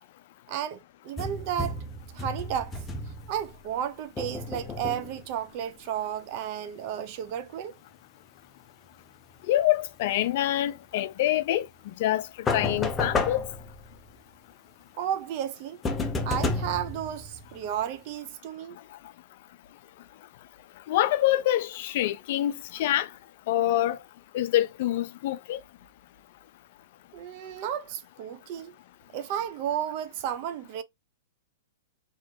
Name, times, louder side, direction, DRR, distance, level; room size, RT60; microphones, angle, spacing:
voice 1, 0.5-1.8 2.1-2.8 3.3-7.8 15.0-15.8 16.3-18.8 27.1-28.7 29.1-30.8, right 10 dB, 45° right, 0.6 m, -33 dB
sound 1, 1.2-3.6 4.2-5.3 12.5-14.1 15.8-17.8, left 3 dB, 15° left, 0.7 m, -32 dB
voice 2, 9.5-11.7 12.0-12.3 12.5-13.4 20.9-23.1 23.5-24.0 24.3-25.6, left 13 dB, 55° left, 0.5 m, -25 dB
3.7 x 3.0 x 2.7 m
hypercardioid pair, 140°, 0 cm